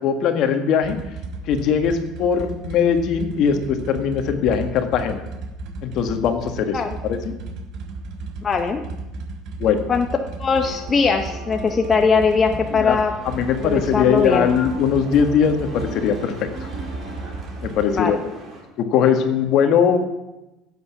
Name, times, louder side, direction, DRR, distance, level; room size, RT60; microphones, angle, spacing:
voice 1, 0.0-1.0 1.5-5.2 5.8-7.3 9.6-9.9 12.7-13.0 13.2-16.5 17.6-18.2 18.8-20.0, left 7 dB, 60° left, 7 dB, 1.6 m, -20 dB
sound 1, 0.8-18.0, right 3 dB, 60° right, 1.6 m, -34 dB
voice 2, 8.4-8.8 9.9-10.1 10.4-13.1 13.6-14.5 17.9-18.2, left 5 dB, 25° left, 5 dB, 0.9 m, -20 dB
sound 2, 10.5-17.3, right 1 dB, 15° right, 5.4 m, -40 dB
sound 3, 13.2-18.6, right 2 dB, 35° right, 4.1 m, -43 dB
15.5 x 8.2 x 6.0 m, 0.99 s
cardioid pair, 125°, 0 cm